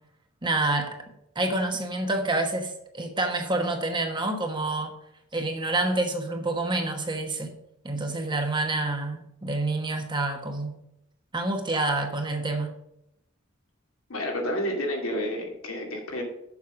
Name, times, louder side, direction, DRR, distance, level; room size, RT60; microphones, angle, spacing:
voice 1, 0.4-1.0 1.3-4.9 5.3-7.5 7.8-10.8 11.3-12.7, right 2 dB, 20° right, 1.1 m, -28 dB
voice 2, 14.1-16.2, equal, 75° left, 2.3 m, -30 dB
7.1 x 5.7 x 6.3 m
head